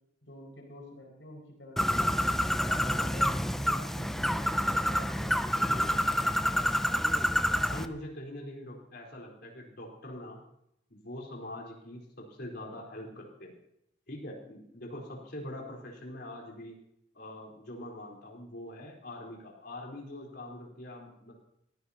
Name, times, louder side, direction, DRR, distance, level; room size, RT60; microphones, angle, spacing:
voice 1, 0.2-2.2 2.6-6.9, equal, 75° left, 0 dB, 5.7 m, -48 dB
Bird, 1.8-7.9, equal, ahead, 0.5 m, -28 dB
voice 2, 7.4-10.4 10.9-13.5 14.1-16.8 17.1-21.3, left 1 dB, 55° left, -1 dB, 4.1 m, -43 dB
22.0 x 16.0 x 2.9 m, 0.77 s
head